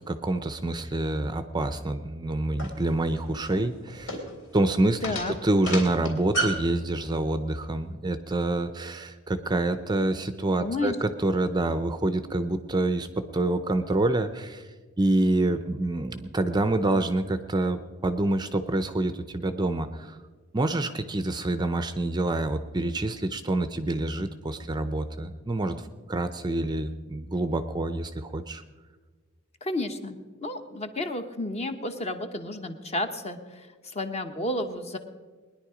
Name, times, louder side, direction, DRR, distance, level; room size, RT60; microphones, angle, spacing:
voice 1, 0.1-4.2 4.5-5.0 5.4-14.7 15.0-20.2 20.5-28.6, right 2 dB, 20° right, 10 dB, 0.5 m, -27 dB
sound 1, 2.6-6.7, right 1 dB, 65° left, 3.3 m, -32 dB
voice 2, 5.0-5.3 10.6-11.0 29.6-35.0, left 1 dB, 30° left, 7 dB, 1.0 m, -32 dB
20.5 x 10.5 x 5.0 m, 1.4 s
head